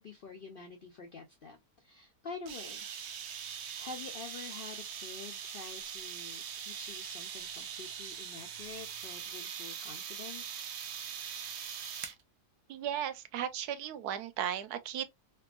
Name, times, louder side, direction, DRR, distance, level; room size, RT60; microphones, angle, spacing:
voice 1, 0.0-2.9 3.7-10.6, left 4 dB, 70° left, 0.5 m, -47 dB
sound 1, 2.5-12.2, right 8 dB, 65° right, 0.7 m, -42 dB
voice 2, 12.7-15.1, right 10 dB, 85° right, 1.1 m, -36 dB
3.4 x 2.9 x 2.2 m
omnidirectional pair, 1.6 m